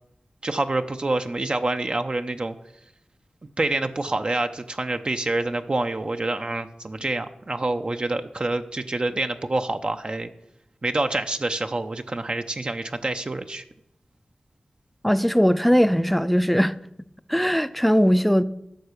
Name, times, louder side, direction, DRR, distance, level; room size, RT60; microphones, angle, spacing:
voice 1, 0.4-2.5 3.6-10.3 10.8-13.6, right 2 dB, 40° right, 0.6 m, -27 dB
voice 2, 15.0-16.7 17.3-18.4, equal, 5° left, 0.5 m, -19 dB
11.5 x 6.7 x 6.6 m
wide cardioid pair, 75°, 2 cm